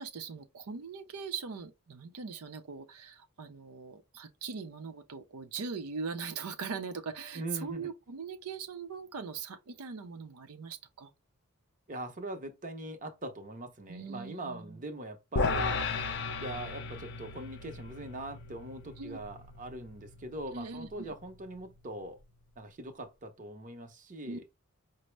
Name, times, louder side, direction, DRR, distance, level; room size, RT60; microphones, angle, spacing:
voice 1, 0.0-11.1 13.9-14.8 19.0-19.2 20.5-20.9 24.2-24.4, right 5 dB, 85° right, 0.5 m, -41 dB
voice 2, 7.3-7.9 11.9-16.0 16.4-22.2 22.6-24.4, right 1 dB, 35° right, 0.7 m, -42 dB
sound 1, 15.4-21.7, left 3 dB, 55° left, 0.6 m, -36 dB
5.1 x 2.0 x 3.2 m
head